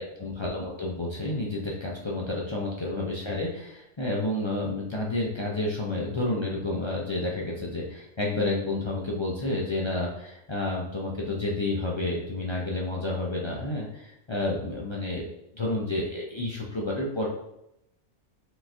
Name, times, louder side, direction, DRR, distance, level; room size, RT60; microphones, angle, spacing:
voice 1, 0.0-17.3, left 2 dB, 45° left, -4 dB, 0.3 m, -30 dB
4.8 x 3.9 x 2.6 m, 0.83 s
omnidirectional pair, 1.4 m